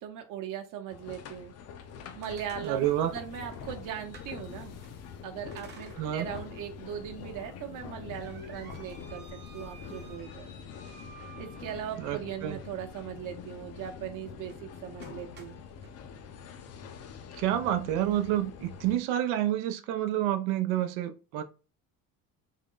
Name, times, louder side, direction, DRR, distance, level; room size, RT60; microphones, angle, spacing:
voice 1, 0.0-1.5 2.1-4.7 5.2-10.5 11.4-15.6, right 9 dB, 55° right, 0.9 m, -39 dB
sound 1, 0.9-19.0, left 7 dB, 40° left, 0.5 m, -45 dB
sound 2, 1.8-4.9 5.5-6.5 6.9-7.0 7.6-12.3 14.4-14.6 15.0-15.9, right 5 dB, 25° right, 0.7 m, -54 dB
sound 3, 2.6-10.3, left 4 dB, 80° left, 1.2 m, -54 dB
voice 2, 2.6-3.1 6.0-6.3 12.0-12.6 17.4-21.4, right 12 dB, 80° right, 0.6 m, -29 dB
3.6 x 2.1 x 3.6 m
cardioid pair, 130°, 38 cm